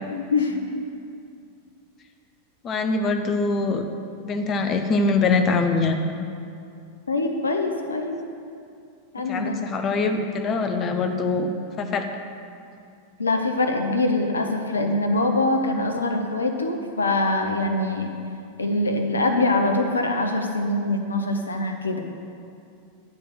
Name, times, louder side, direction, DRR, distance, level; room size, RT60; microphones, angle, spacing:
voice 1, 0.3-0.7 7.1-8.2 9.1-9.6 13.2-18.1 18.6-22.0, left 2 dB, 75° left, 5 dB, 0.6 m, -23 dB
voice 2, 2.6-3.8 4.2-6.0 9.3-11.5 11.8-12.1, left 3 dB, 30° left, 6 dB, 0.6 m, -23 dB
9.6 x 3.3 x 6.1 m, 2.5 s
figure-of-eight pair, 90°, 0 cm